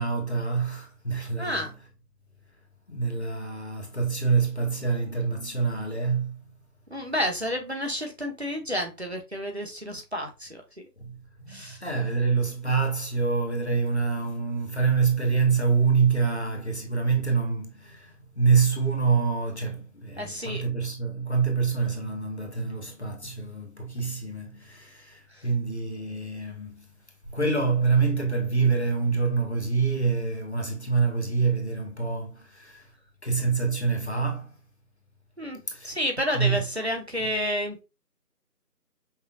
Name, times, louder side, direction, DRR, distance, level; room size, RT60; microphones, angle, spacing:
voice 1, 0.0-1.7 2.9-6.4 11.0-26.9 27.3-32.9 33.2-34.6 35.7-35.9 36.3-36.6, right 5 dB, 45° left, 0.9 m, -26 dB
voice 2, 1.4-1.7 6.9-10.6 11.5-11.8 20.2-20.6 25.3-25.5 35.4-37.8, equal, 40° right, 0.8 m, -30 dB
5.5 x 2.5 x 2.3 m
figure-of-eight pair, 165°, 48 cm